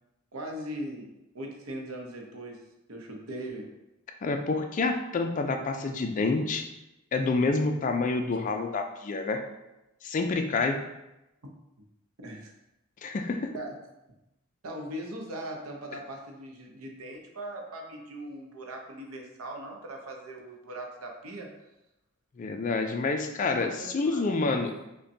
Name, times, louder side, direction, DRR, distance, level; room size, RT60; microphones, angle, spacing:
voice 1, 0.3-2.6 2.9-3.7 12.2-12.5 13.5-13.7 14.6-21.5 23.6-24.9, right 1 dB, 80° right, 1 dB, 0.6 m, -40 dB
voice 2, 4.2-6.6 7.1-9.4 10.0-10.8 13.0-13.4 22.4-24.7, left 3 dB, 35° left, 5 dB, 0.3 m, -28 dB
5.2 x 2.2 x 2.6 m, 0.94 s
head